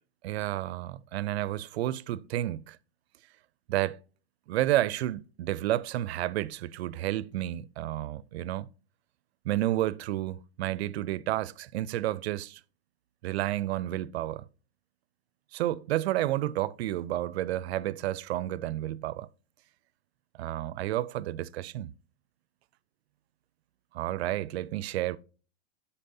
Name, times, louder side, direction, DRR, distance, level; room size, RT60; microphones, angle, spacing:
voice 1, 0.2-2.8 3.7-4.0 4.5-8.7 9.5-12.6 13.2-14.4 15.5-19.3 20.4-21.9 23.9-25.2, right 14 dB, 70° right, 0.5 m, -31 dB
11.0 x 4.2 x 2.6 m
hypercardioid pair, 140°, 33 cm